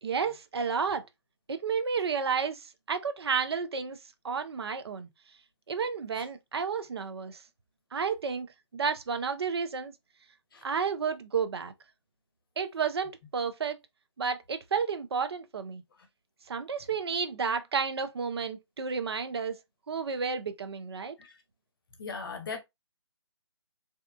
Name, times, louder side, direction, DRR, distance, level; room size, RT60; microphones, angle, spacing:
voice 1, 0.0-1.0 1.5-4.0 4.2-5.1 5.7-7.4 7.9-9.9 10.6-11.7 12.6-13.8 14.2-15.8 16.5-19.6 19.9-21.1, right 6 dB, 60° right, 0.5 m, -31 dB
voice 2, 22.0-22.6, left 5 dB, 50° left, 0.7 m, -38 dB
2.8 x 2.2 x 2.2 m
figure-of-eight pair, 145°, 15 cm